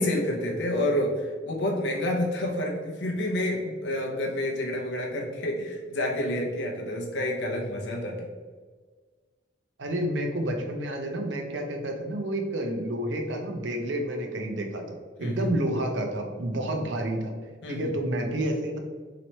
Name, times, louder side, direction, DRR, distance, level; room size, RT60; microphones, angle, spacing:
voice 1, 0.0-8.3 15.2-15.5 17.6-17.9, left 1 dB, 70° left, 0 dB, 0.6 m, -29 dB
voice 2, 9.8-17.3 17.7-18.8, right 1 dB, 75° right, 3 dB, 0.6 m, -29 dB
3.1 x 2.9 x 4.1 m, 1.5 s
head